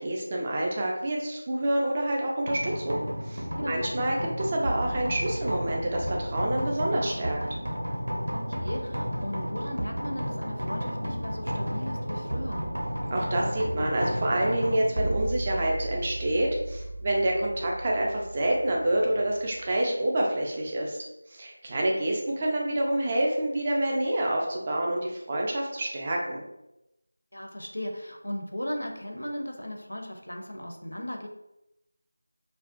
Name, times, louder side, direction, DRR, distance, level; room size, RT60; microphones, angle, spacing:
voice 1, 0.0-7.4 13.1-21.0 21.3-26.4, right 1 dB, 25° right, -1 dB, 0.4 m, -27 dB
sound 1, 2.5-19.7, equal, 75° right, 0.6 m, -33 dB
voice 2, 8.3-12.7 27.3-31.3, left 1 dB, 75° left, 2 dB, 0.5 m, -36 dB
2.3 x 2.1 x 2.5 m, 0.89 s
figure-of-eight pair, 170°, 0 cm